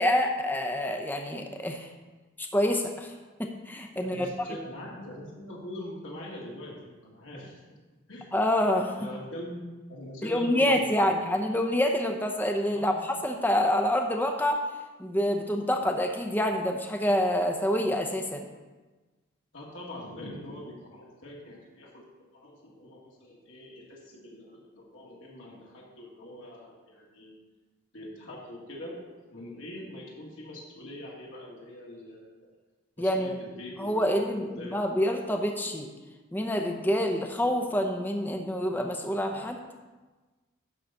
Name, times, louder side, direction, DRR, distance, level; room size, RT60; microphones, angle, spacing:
voice 1, 0.0-1.9 2.4-3.1 3.4-4.3 8.3-8.9 10.2-14.6 15.0-18.4 33.0-33.4 33.8-35.9 36.3-39.6, left 1 dB, 10° left, 3 dB, 0.7 m, -27 dB
voice 2, 4.0-6.7 7.0-7.8 8.1-8.3 9.0-11.3 12.7-13.0 19.5-27.4 27.9-29.0 29.3-32.5 33.0-35.0, left 1 dB, 65° left, -4 dB, 1.9 m, -43 dB
11.0 x 3.9 x 7.0 m, 1.2 s
head